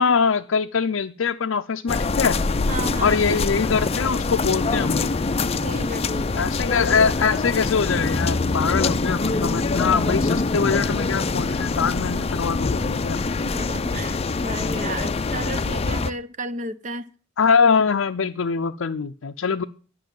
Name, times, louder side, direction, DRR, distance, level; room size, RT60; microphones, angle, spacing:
voice 1, 0.0-2.4 3.0-5.1 6.4-13.2 17.4-19.6, left 5 dB, 85° left, 0.6 m, -23 dB
sound 1, 1.9-16.1, left 3 dB, 30° left, 0.5 m, -24 dB
voice 2, 2.7-3.2 5.6-6.5 13.4-17.1, right 2 dB, 40° right, 0.8 m, -33 dB
11.5 x 6.2 x 8.9 m
head